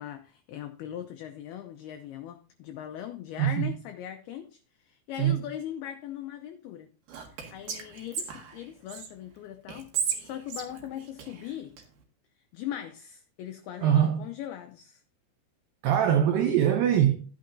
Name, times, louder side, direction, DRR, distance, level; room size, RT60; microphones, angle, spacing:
voice 1, 0.0-6.9 7.5-9.9 10.2-11.7 12.5-15.0, left 11 dB, 80° left, 2.3 m, -40 dB
voice 2, 3.4-3.7 5.2-5.4 13.8-14.3 15.8-17.3, right 10 dB, 80° right, 2.0 m, -23 dB
Whispering, 7.1-9.1 9.7-11.8, right 7 dB, 60° right, 2.8 m, -35 dB
12.5 x 9.3 x 2.6 m
omnidirectional pair, 5.2 m